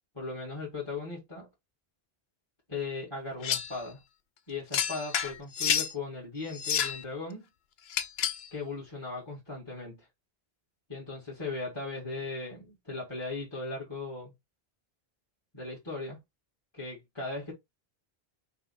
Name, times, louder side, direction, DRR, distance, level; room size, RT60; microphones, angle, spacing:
voice 1, 0.1-1.5 2.7-4.0 4.5-7.5 8.5-10.1 10.9-14.3 15.5-16.2 16.7-17.5, left 3 dB, 25° left, 1.8 m, -38 dB
sound 1, 3.4-3.8 4.7-5.9 6.5-7.0 7.9-8.5, left 8 dB, 80° left, 0.9 m, -29 dB
5.6 x 2.1 x 4.1 m
omnidirectional pair, 1.0 m